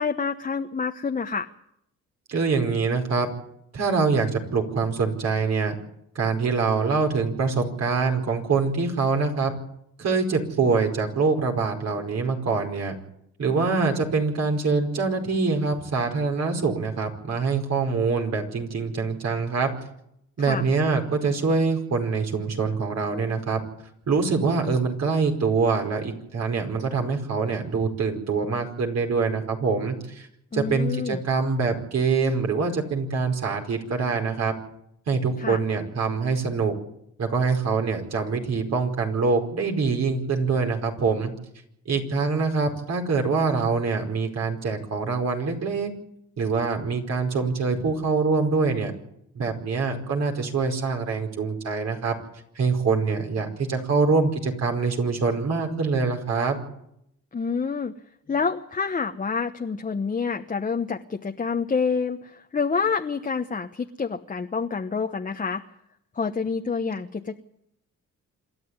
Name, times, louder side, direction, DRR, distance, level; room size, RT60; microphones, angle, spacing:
voice 1, 0.0-1.5 20.4-20.6 30.5-31.2 35.4-35.6 57.3-57.9 58.3-65.6 66.1-67.4, left 5 dB, 25° left, 5 dB, 1.1 m, -27 dB
voice 2, 2.3-3.3 3.7-5.8 6.1-9.5 10.0-12.9 13.4-19.7 20.4-23.6 24.1-30.3 30.5-34.5 35.1-36.8 37.2-41.3 41.8-45.9 46.4-48.9 49.3-52.1 52.5-56.6, right 4 dB, 60° right, 3 dB, 5.0 m, -24 dB
27.0 x 11.5 x 9.6 m, 0.77 s
cardioid pair, 90°, 30 cm